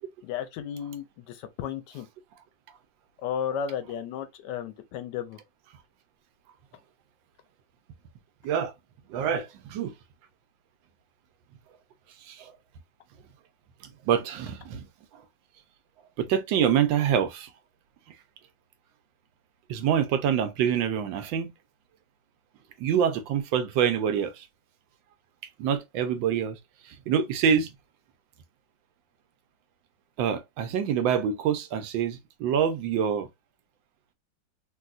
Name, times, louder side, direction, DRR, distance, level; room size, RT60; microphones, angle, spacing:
voice 1, 0.2-2.1 3.2-5.4, left 8 dB, 75° left, 1.1 m, -34 dB
voice 2, 9.1-9.9 12.2-12.5 14.0-14.9 15.1-15.2 16.2-17.5 19.7-21.5 22.8-24.5 25.6-26.6 26.9-27.7 30.2-33.3, right 8 dB, 85° right, 1.3 m, -26 dB
3.3 x 2.7 x 2.4 m
omnidirectional pair, 2.0 m